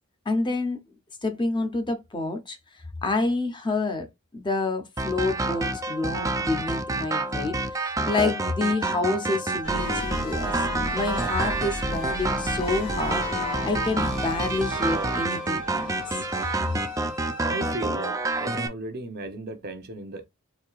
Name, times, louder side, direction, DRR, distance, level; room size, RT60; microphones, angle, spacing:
voice 1, 0.3-0.8 1.2-2.6 3.0-4.1 4.3-10.5 10.9-15.9, left 3 dB, 20° left, 0.7 m, -28 dB
sound 1, 5.0-18.7, right 2 dB, 15° right, 0.4 m, -28 dB
sound 2, 9.6-18.0, left 1 dB, 80° left, 1.9 m, -35 dB
voice 2, 17.5-20.3, right 2 dB, 45° right, 0.8 m, -35 dB
4.4 x 2.7 x 2.4 m
head